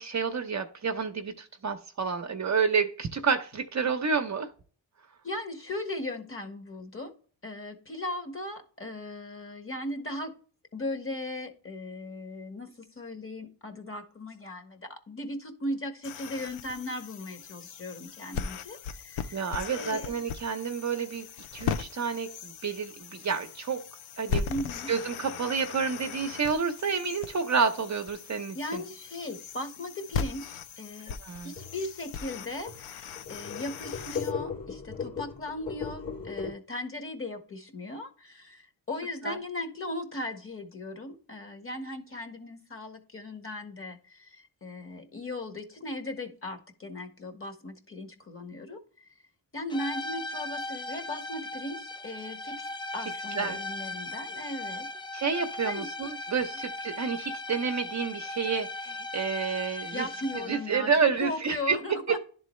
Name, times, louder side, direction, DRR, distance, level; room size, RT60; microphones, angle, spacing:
voice 1, 0.0-4.5 19.3-21.3 21.5-23.8 24.2-24.5 24.9-28.8 31.2-31.5 39.2-39.4 53.4-53.6 55.1-60.1 60.5-61.8, right 5 dB, 35° right, 5 dB, 0.7 m, -29 dB
voice 2, 5.2-7.1 7.4-10.3 10.7-19.4 19.7-20.1 24.5-24.9 28.5-31.1 31.4-49.1 49.5-54.9 55.6-55.9 59.9-62.2, left 1 dB, 25° left, 6 dB, 1.4 m, -38 dB
sound 1, 16.0-34.3, left 7 dB, 80° left, 0.7 m, -38 dB
sound 2, 31.6-31.8 32.3-32.4 32.7-32.8 33.2-36.5, left 5 dB, 65° left, 2.4 m, -36 dB
sound 3, 49.7-60.8, left 2 dB, 10° left, 0.4 m, -38 dB
11.0 x 3.8 x 3.1 m, 0.41 s
cardioid pair, 80°, 47 cm